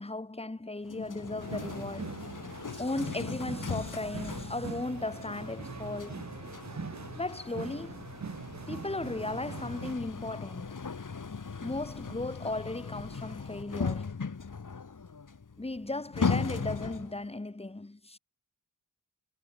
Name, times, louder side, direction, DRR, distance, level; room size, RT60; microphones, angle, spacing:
voice 1, 0.0-2.2 2.7-6.2 7.1-8.0 8.7-10.8 11.6-14.1 15.6-18.2, left 2 dB, 15° left, 1.5 m, -36 dB
sound 1, 0.8-17.3, left 5 dB, 60° left, 4.3 m, -38 dB
sound 2, 1.4-10.0, right 5 dB, 50° right, 1.5 m, -42 dB
wide cardioid pair, 115°, 35 cm